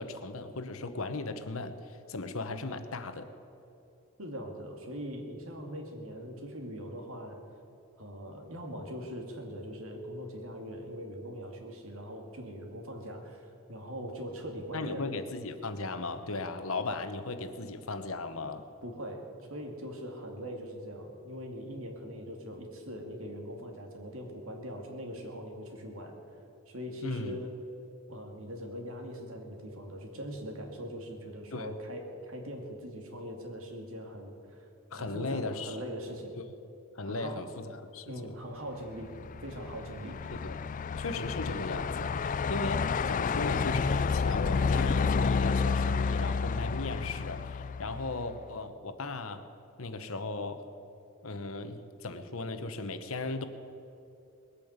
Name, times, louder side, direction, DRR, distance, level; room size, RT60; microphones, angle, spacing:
voice 1, 0.0-3.3 14.7-18.7 27.0-27.4 31.5-31.8 34.9-35.8 36.9-38.3 40.3-40.6 41.0-49.5 49.8-50.6 51.2-53.5, left 3 dB, 65° left, 10 dB, 1.0 m, -37 dB
voice 2, 4.2-7.4 8.0-15.1 18.8-26.2 26.7-27.6 28.1-34.7 35.0-36.4 37.0-37.5 38.1-39.1 39.4-40.2, equal, 65° right, 3 dB, 2.3 m, -41 dB
Truck, 39.0-48.4, left 5 dB, 35° left, 0.3 m, -30 dB
20.5 x 8.8 x 8.1 m, 2.8 s
head